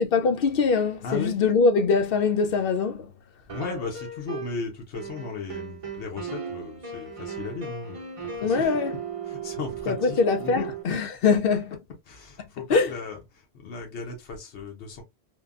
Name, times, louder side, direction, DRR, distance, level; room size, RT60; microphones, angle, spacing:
voice 1, 0.0-3.0 8.4-8.9 9.9-11.6 12.7-12.9, left 4 dB, 65° left, 0.7 m, -22 dB
voice 2, 1.0-1.4 3.5-8.8 9.2-10.7 11.2-11.6 12.0-15.0, left 4 dB, 85° left, 1.1 m, -36 dB
sound 1, 3.5-4.7 4.9-10.8, right 6 dB, 35° right, 0.7 m, -36 dB
3.2 x 2.2 x 2.3 m
omnidirectional pair, 1.1 m